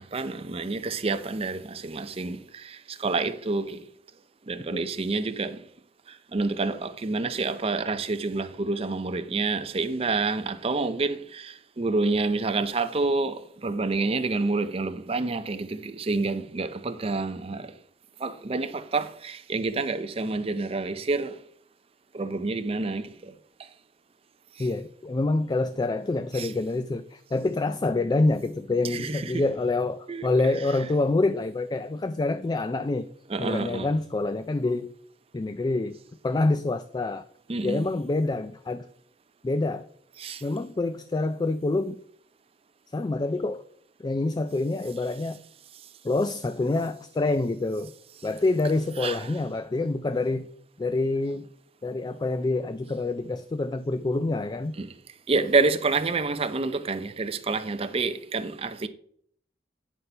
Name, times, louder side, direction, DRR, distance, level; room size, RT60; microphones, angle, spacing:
voice 1, 0.0-3.9 4.5-5.7 6.1-17.8 18.2-21.4 22.1-23.3 23.6-23.7 24.6-24.7 26.3-26.5 28.9-29.4 30.1-30.3 33.3-33.9 37.5-37.9 40.2-40.4 49.0-49.3 54.8-54.9 55.3-58.9, right 3 dB, 35° right, 0.5 m, -28 dB
voice 2, 24.6-33.1 33.4-34.9 35.3-36.0 36.2-37.2 37.6-38.9 39.4-39.9 40.4-42.0 42.9-43.6 44.0-45.4 46.0-47.9 48.2-50.5 50.8-51.5 51.8-54.8, left 2 dB, 25° left, 0.3 m, -26 dB
9.5 x 4.1 x 5.4 m
head